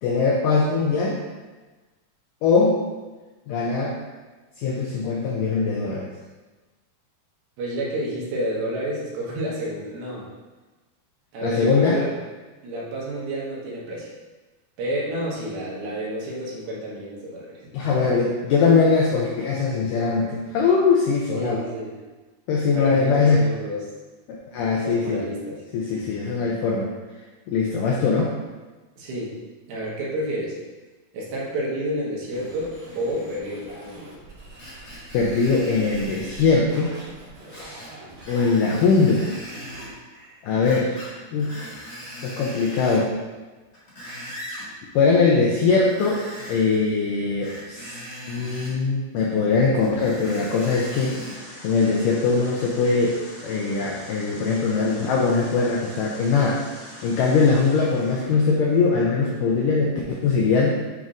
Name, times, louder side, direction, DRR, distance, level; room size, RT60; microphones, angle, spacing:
voice 1, 0.0-1.2 2.4-2.8 3.5-4.0 4.6-6.1 11.4-12.0 17.7-21.6 22.5-23.4 24.5-25.2 25.7-26.9 27.5-28.3 35.1-37.0 37.5-37.8 38.3-39.3 40.4-41.7 42.2-43.1 44.9-48.0 48.3-51.2 51.6-53.2 53.4-56.6 57.0-60.7, left 4 dB, 85° left, -2 dB, 1.9 m, -21 dB
voice 2, 7.6-10.3 11.3-12.1 12.6-14.1 14.8-17.6 17.9-18.2 21.3-21.9 22.7-23.9 24.8-25.6 29.0-29.3 29.7-30.6 31.1-34.1, right 1 dB, 75° right, -5 dB, 3.0 m, -30 dB
sound 1, 32.3-40.4, right 2 dB, 55° right, 2.7 m, -44 dB
Screech, 34.6-36.5 37.5-37.9 38.2-39.9 40.6-41.1 41.4-43.1 43.6-44.7 45.8-46.8 47.4-48.8 49.8-51.4 52.0-52.1, equal, 40° left, 1.9 m, -39 dB
sound 2, 50.2-58.2, left 1 dB, 65° left, 1.3 m, -43 dB
9.1 x 4.1 x 2.5 m, 1.2 s
omnidirectional pair, 4.5 m